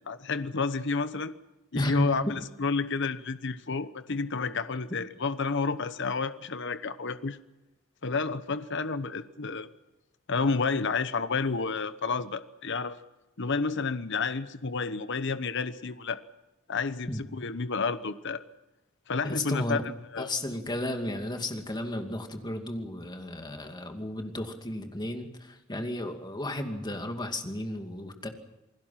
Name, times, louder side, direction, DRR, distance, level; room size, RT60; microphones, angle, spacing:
voice 1, 0.1-1.3 1.7-7.4 8.0-9.7 10.3-13.0 13.4-16.2 16.7-18.4 19.1-20.3, left 4 dB, 60° left, 12 dB, 1.0 m, -30 dB
voice 2, 1.7-2.3 17.1-17.2 19.2-19.8 20.2-28.3, left 1 dB, 20° left, 5 dB, 2.5 m, -33 dB
28.5 x 20.5 x 5.9 m, 0.99 s
head